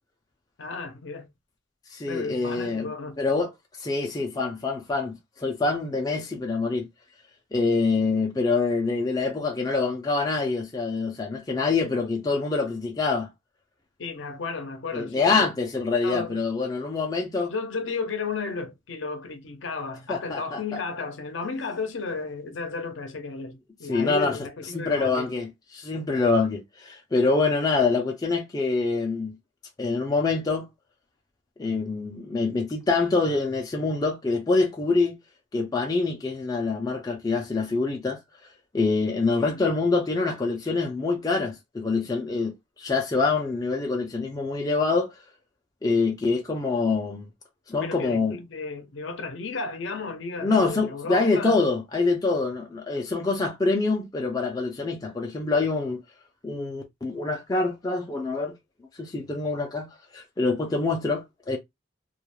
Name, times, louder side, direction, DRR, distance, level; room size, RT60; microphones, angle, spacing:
voice 1, 0.6-1.3 2.1-3.2 14.0-15.5 16.0-16.4 17.5-25.3 39.4-39.6 47.8-51.6, left 4 dB, 70° left, 0.6 m, -33 dB
voice 2, 1.9-2.9 3.2-3.5 3.8-6.9 7.5-13.3 14.9-17.5 20.1-20.8 23.9-24.3 24.7-29.4 29.8-30.7 31.6-35.2 35.5-38.2 38.7-42.5 42.8-45.1 45.8-47.3 47.7-48.4 50.4-56.0 56.4-58.5 59.0-59.9 60.1-61.6, left 3 dB, 20° left, 0.4 m, -25 dB
2.3 x 2.1 x 3.0 m
head